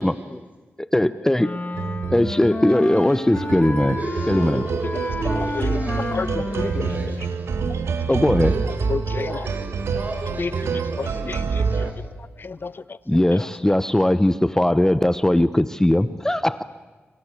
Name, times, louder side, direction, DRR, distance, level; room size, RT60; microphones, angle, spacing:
voice 1, 0.0-0.4 0.9-1.6 2.1-4.0 4.3-4.6 8.1-8.5 13.1-16.6, left 1 dB, 10° left, 14 dB, 0.9 m, -19 dB
Wind instrument woodwind instrument, 1.4-7.3, left 2 dB, 35° left, 2.0 m, -30 dB
sound 1, 1.7-11.9, right 5 dB, 90° right, 1.9 m, -27 dB
voice 2, 3.9-7.6 8.4-8.8 9.3-12.0, right 2 dB, 35° right, 1 dB, 7.8 m, -36 dB
voice 3, 5.3-5.8 6.1-7.2 7.7-8.1 8.9-9.5 10.4-12.1 12.4-13.5, left 4 dB, 55° left, 18 dB, 0.8 m, -32 dB
28.0 x 25.0 x 8.4 m, 1.3 s
cardioid pair, 70°, 4 cm